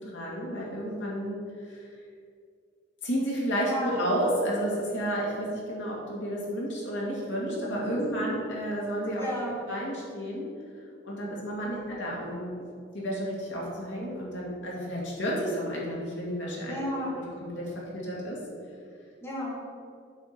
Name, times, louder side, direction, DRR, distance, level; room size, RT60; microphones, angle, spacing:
voice 1, 0.0-2.0 3.0-9.2 9.7-10.5 11.0-12.6 12.9-16.7 17.1-18.4, equal, 75° left, -4 dB, 2.3 m, -31 dB
voice 2, 9.2-9.5 11.6-11.9 16.7-17.1 19.2-19.6, equal, 15° left, -6 dB, 1.8 m, -33 dB
7.9 x 4.7 x 6.7 m, 2.3 s
head